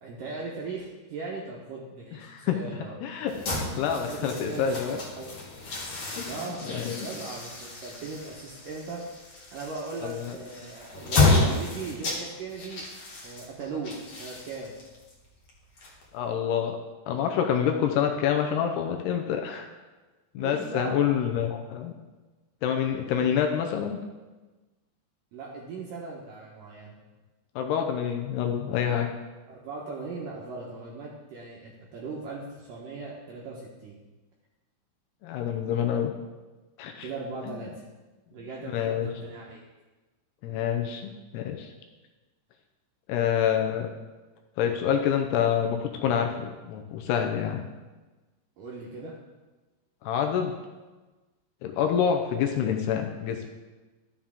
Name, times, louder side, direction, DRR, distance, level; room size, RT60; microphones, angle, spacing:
voice 1, 0.0-3.1 4.1-5.5 6.0-9.0 9.5-12.8 13.2-14.8 20.4-21.2 25.3-27.0 29.5-34.0 37.0-37.8 38.3-39.6 48.6-49.2, right 4 dB, 70° right, -3 dB, 2.2 m, -38 dB
voice 2, 3.0-3.3 3.8-5.0 6.2-6.3 6.7-7.0 10.0-10.4 16.1-16.8 17.1-19.7 20.3-21.9 22.6-24.0 27.6-29.1 35.2-36.1 36.8-37.1 37.5-37.6 38.7-39.1 40.4-41.7 43.1-43.9 44.6-47.6 50.0-50.6 51.6-53.5, left 8 dB, 80° left, 4 dB, 2.6 m, -27 dB
sound 1, 3.3-16.3, left 3 dB, 50° left, 1.8 m, -31 dB
12.5 x 7.1 x 3.6 m, 1.2 s
omnidirectional pair, 5.0 m